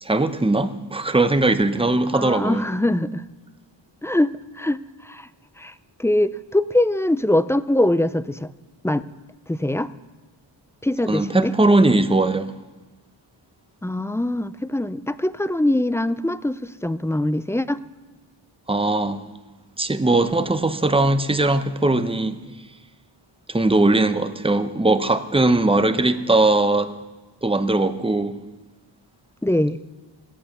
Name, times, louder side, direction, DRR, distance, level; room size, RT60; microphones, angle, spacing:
voice 1, 0.0-2.6 11.1-12.5 18.7-19.2 19.8-22.4 23.5-26.9 27.4-28.4, right 2 dB, 10° right, 0.8 m, -20 dB
voice 2, 2.1-3.3 4.0-5.3 5.6-5.7 6.0-8.5 8.8-9.0 9.5-9.9 10.8-11.5 13.8-17.8 29.4-29.8, left 1 dB, 5° left, 0.3 m, -22 dB
16.5 x 8.7 x 6.8 m
cardioid pair, 60°, 48 cm